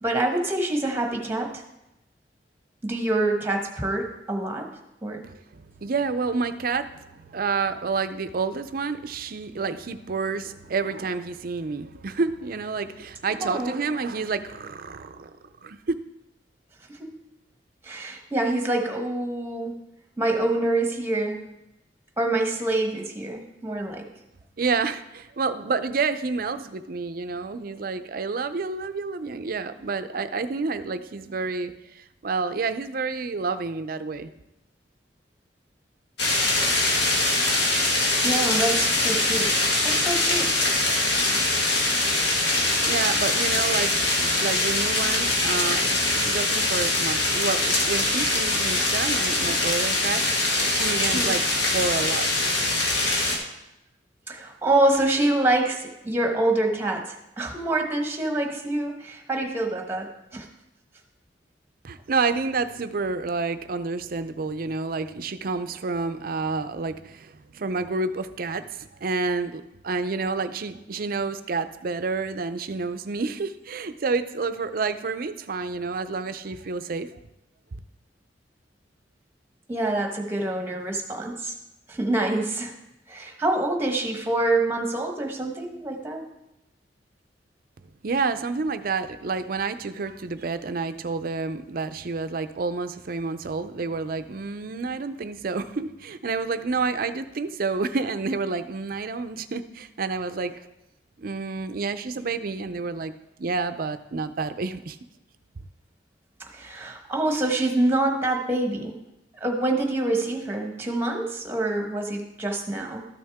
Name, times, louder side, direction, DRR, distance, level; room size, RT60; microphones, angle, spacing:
voice 1, 0.0-1.6 2.8-4.7 5.0-5.3 13.4-13.8 17.0-17.1 17.8-19.8 20.2-21.5 22.2-24.1 38.2-39.5 39.8-40.5 49.4-49.5 51.1-51.3 54.3-60.5 79.7-81.5 81.9-82.7 83.1-86.3 106.5-109.0 109.4-113.1, right 2 dB, 15° right, 2 dB, 1.2 m, -26 dB
voice 2, 5.2-15.4 15.6-15.8 24.6-34.3 42.5-51.4 51.7-52.6 61.8-77.2 77.7-77.8 88.0-100.7 101.2-103.1 103.4-105.0, right 4 dB, 50° right, 11 dB, 0.5 m, -29 dB
sound 1, 36.2-53.4, left 2 dB, 70° left, 1.6 m, -23 dB
13.0 x 6.4 x 3.5 m, 0.90 s
head